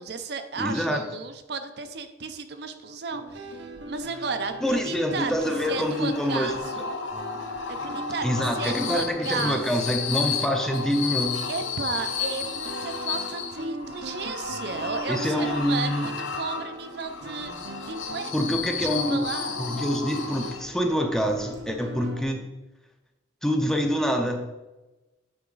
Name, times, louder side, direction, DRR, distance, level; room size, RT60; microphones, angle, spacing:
voice 1, 0.0-6.9 7.7-10.0 11.5-19.6, right 4 dB, 60° right, 8 dB, 0.6 m, -34 dB
voice 2, 0.6-1.1 4.6-6.5 8.2-11.4 15.1-16.1 18.3-19.3 19.6-22.5 23.4-24.4, equal, 5° left, 4 dB, 0.6 m, -26 dB
sound 1, 3.1-22.2, right 2 dB, 80° right, 0.9 m, -41 dB
sound 2, 5.2-20.9, left 5 dB, 90° left, 0.7 m, -33 dB
8.6 x 4.8 x 3.9 m, 1.1 s
head